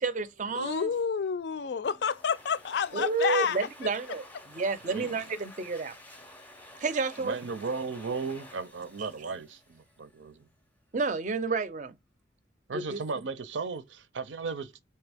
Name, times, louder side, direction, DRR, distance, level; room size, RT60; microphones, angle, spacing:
voice 1, 0.0-0.9 2.9-6.0 6.8-7.4 9.0-9.1 10.9-12.0 12.7-13.0, right 4 dB, 45° right, 0.5 m, -30 dB
voice 2, 0.5-3.7, left 6 dB, 65° left, 0.4 m, -29 dB
Domestic sounds home sounds, 1.8-10.3, left 1 dB, 10° left, 0.5 m, -51 dB
voice 3, 7.2-10.5 12.7-14.7, right 4 dB, 90° right, 0.6 m, -35 dB
3.5 x 2.8 x 3.4 m
head